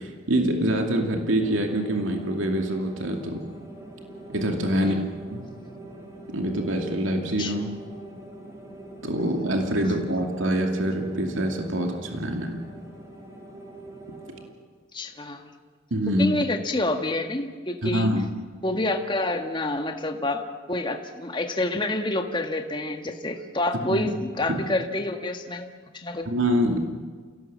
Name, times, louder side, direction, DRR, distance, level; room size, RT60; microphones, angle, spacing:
voice 1, 0.0-3.4 4.3-4.9 5.3-5.5 6.3-7.7 9.0-12.6 15.9-16.3 17.8-18.3 23.9-24.1 24.5-24.6 26.3-26.9, right 1 dB, 75° right, 3 dB, 2.5 m, -25 dB
sound 1, 1.4-14.5, right 2 dB, 15° right, 3.8 m, -43 dB
voice 2, 4.7-5.1 7.4-7.5 14.9-15.5 16.2-18.1 18.6-26.3, left 2 dB, 25° left, 5 dB, 1.7 m, -28 dB
28.0 x 17.5 x 7.5 m, 1.5 s
head